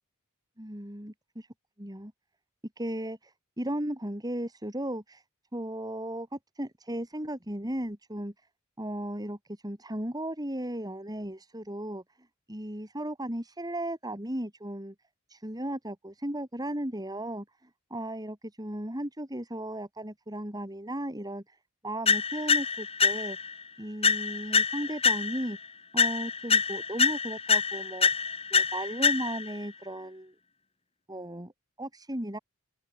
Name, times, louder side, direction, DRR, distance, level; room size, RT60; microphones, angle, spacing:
voice 1, 0.6-1.5 1.8-2.1 2.8-5.2 5.5-8.3 8.8-12.0 12.5-14.9 15.3-21.6 21.8-23.4 23.8-25.6 25.9-28.1 28.5-30.3 31.1-31.5 31.8-32.4, right 1 dB, 20° right, 4.7 m, -36 dB
sound 1, 22.1-23.5 24.0-25.6 26.0-29.6, left 5 dB, 30° left, 3.4 m, -26 dB
open air
head